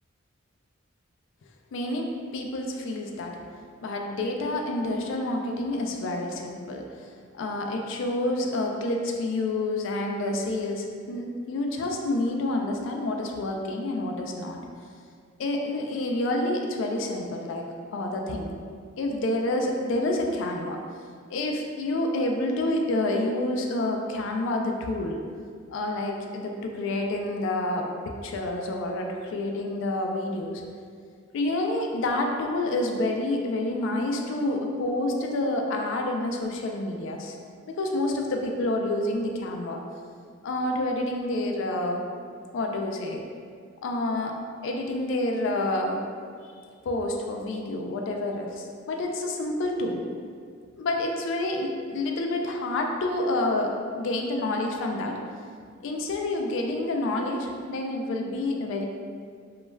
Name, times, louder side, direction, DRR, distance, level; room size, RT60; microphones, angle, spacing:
voice 1, 1.7-3.3 3.8-7.1 7.3-14.6 15.4-17.7 17.9-18.5 19.0-20.8 21.3-25.2 25.7-30.6 31.3-37.4 37.8-39.8 40.4-42.0 42.5-43.2 43.8-44.4 44.6-46.0 46.8-50.0 50.8-55.2 55.8-58.8, left 2 dB, 65° left, 2 dB, 0.3 m, -28 dB
2.3 x 2.1 x 3.2 m, 2.2 s
head